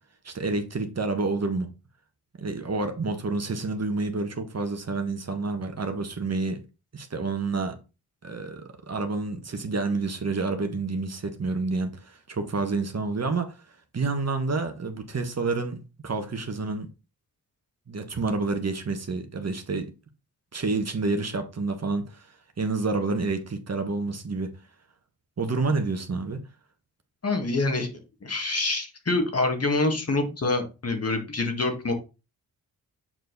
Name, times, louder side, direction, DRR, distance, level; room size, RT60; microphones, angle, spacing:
voice 1, 0.2-1.7 2.4-6.6 6.9-7.8 8.2-13.6 13.9-16.9 17.9-19.9 20.5-22.3 22.6-24.5 25.4-26.4, right 3 dB, 40° right, 1.5 m, -29 dB
voice 2, 27.2-27.9 28.2-31.9, left 2 dB, 40° left, 2.0 m, -26 dB
7.6 x 4.7 x 4.0 m
cardioid pair, 55°, 37 cm